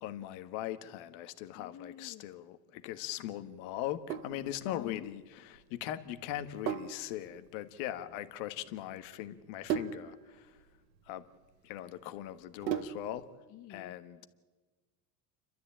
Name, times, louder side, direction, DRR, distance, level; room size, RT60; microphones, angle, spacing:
voice 1, 0.0-10.5 11.1-11.2 11.6-13.3 13.7-14.3, left 12 dB, 65° left, 1.5 m, -40 dB
voice 2, 1.5-2.3 4.6-5.1 13.5-13.9, left 12 dB, 35° left, 0.8 m, -47 dB
Sink (filling or washing), 3.8-13.2, right 9 dB, 90° right, 1.3 m, -40 dB
29.0 x 13.0 x 8.7 m
supercardioid pair, 105°, 49 cm